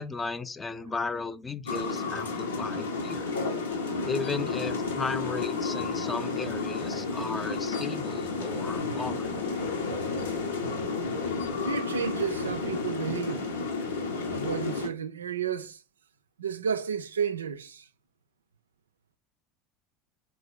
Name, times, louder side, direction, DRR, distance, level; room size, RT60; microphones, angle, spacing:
voice 1, 0.0-3.3 4.0-9.3, left 4 dB, 20° left, 0.5 m, -35 dB
sound 1, 1.7-14.9, left 4 dB, 75° left, 0.8 m, -31 dB
voice 2, 2.3-2.7 3.2-3.4 11.6-13.5 14.3-15.8 16.4-17.9, right 7 dB, 75° right, 0.4 m, -32 dB
3.9 x 2.8 x 4.6 m
figure-of-eight pair, 70°, 0 cm